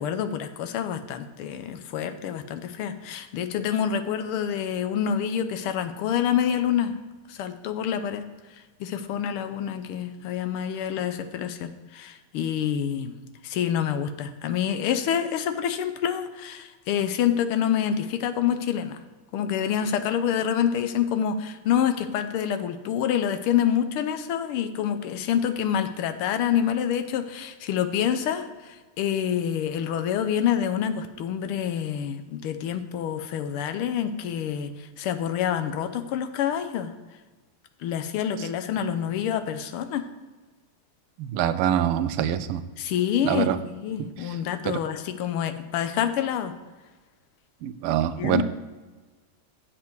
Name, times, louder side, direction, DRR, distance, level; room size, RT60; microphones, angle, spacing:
voice 1, 0.0-6.9 7.3-8.3 8.8-13.1 13.4-19.0 19.3-36.9 37.8-40.0 42.8-46.5 48.2-48.4, left 9 dB, 85° left, 10 dB, 1.6 m, -27 dB
voice 2, 41.2-42.6 43.2-43.6 44.6-44.8 47.6-48.4, right 10 dB, 85° right, 12 dB, 1.5 m, -24 dB
8.1 x 7.5 x 4.6 m, 1.3 s
omnidirectional pair, 2.4 m